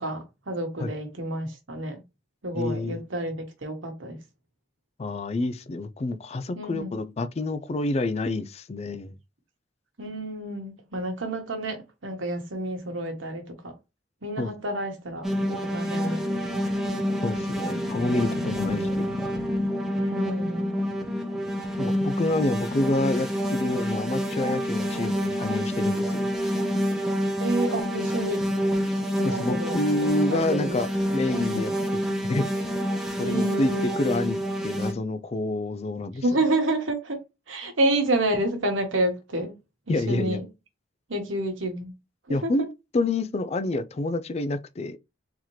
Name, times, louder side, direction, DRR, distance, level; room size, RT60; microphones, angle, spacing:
voice 1, 0.0-2.0 2.4-4.2 6.6-6.9 10.0-13.7 14.2-16.6 18.5-19.2 19.9-20.7 27.4-28.5 29.2-30.8 31.3-31.6 33.2-34.0 36.2-37.2 37.5-39.5 39.9-40.5 41.1-41.9 42.4-42.5, right 1 dB, 85° right, 1.2 m, -29 dB
voice 2, 2.5-3.0 5.0-9.1 14.4-14.5 17.2-19.0 21.8-26.3 29.2-31.7 32.2-32.5 33.2-34.4 34.6-36.2 39.9-40.4 42.3-42.7 42.9-45.0, left 2 dB, 35° left, 0.4 m, -28 dB
sound 1, 15.2-34.9, equal, ahead, 0.7 m, -27 dB
3.9 x 2.8 x 3.1 m
head